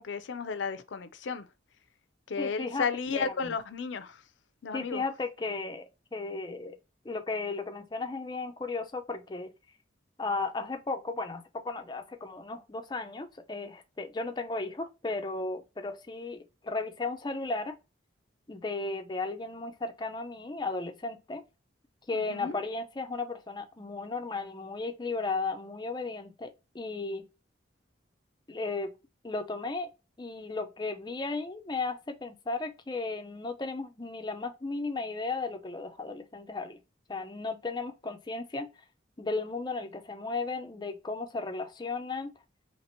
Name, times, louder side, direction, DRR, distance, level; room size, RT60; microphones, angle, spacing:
voice 1, 0.0-1.4 2.3-4.2 4.6-5.0 22.1-22.5, left 5 dB, 80° left, 0.5 m, -33 dB
voice 2, 2.4-2.9 3.1-3.5 4.7-5.8 6.1-6.8 7.0-9.5 10.2-17.8 18.5-21.4 22.1-27.3 28.5-29.0 29.2-29.9 30.2-36.8 37.1-38.7 39.2-42.3, left 3 dB, 25° left, 0.4 m, -35 dB
2.9 x 2.9 x 4.2 m
head